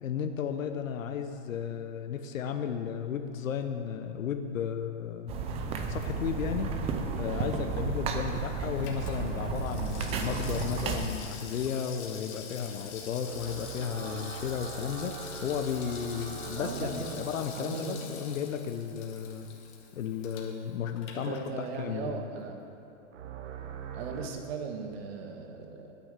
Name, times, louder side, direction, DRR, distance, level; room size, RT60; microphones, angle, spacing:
voice 1, 0.0-5.3 5.9-6.7 7.2-19.5 19.9-22.3, left 7 dB, 85° left, 6 dB, 1.0 m, -34 dB
sound 1, 5.3-11.1, right 4 dB, 15° right, 0.5 m, -32 dB
Water tap faucet / Sink (filling or washing), 7.6-21.9 22.2-22.3, left 6 dB, 35° left, 1.8 m, -46 dB
sound 2, 13.2-19.0 23.1-24.3, right 4 dB, 70° right, 1.2 m, -42 dB
voice 2, 16.5-17.2 17.5-18.4 21.1-22.6 23.9-25.9, right 4 dB, 50° right, 4 dB, 1.8 m, -38 dB
10.0 x 9.6 x 7.5 m, 2.8 s
hypercardioid pair, 145°, 39 cm